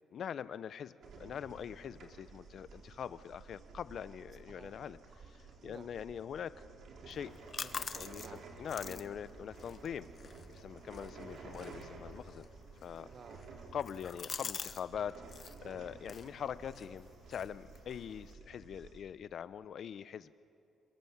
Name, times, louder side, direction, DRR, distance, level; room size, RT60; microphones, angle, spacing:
voice 1, 0.1-5.0 5.3-6.6 7.0-7.4 8.0-8.2 8.6-10.1 10.5-12.5 12.8-13.1 13.7-15.2 15.6-20.3, left 8 dB, 60° left, 16 dB, 0.6 m, -43 dB
Raindrops on Window, 1.0-19.0, right 4 dB, 65° right, 3.5 m, -53 dB
sound 1, 7.1-14.8 15.1-15.6 16.0-18.3, left 6 dB, 45° left, 1.1 m, -47 dB
voice 2, 7.6-8.4 13.1-13.4, right 5 dB, 50° right, 10 dB, 1.4 m, -54 dB
27.0 x 22.0 x 7.3 m, 2.6 s
cardioid pair, 90°, 0 cm